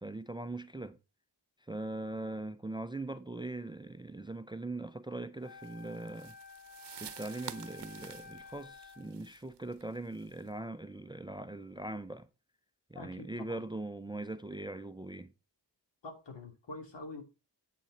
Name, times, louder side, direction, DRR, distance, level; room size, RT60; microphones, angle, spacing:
voice 1, 0.0-1.0 1.6-6.4 7.0-12.3 12.9-15.3, right 2 dB, 10° right, 0.4 m, -41 dB
Wind instrument woodwind instrument, 5.4-9.2, left 5 dB, 60° left, 4.5 m, -52 dB
sound 1, 5.6-10.5, right 10 dB, 70° right, 0.7 m, -50 dB
voice 2, 12.9-13.6 16.0-17.2, left 3 dB, 80° left, 3.0 m, -46 dB
8.3 x 6.6 x 4.1 m
wide cardioid pair, 165°, 43 cm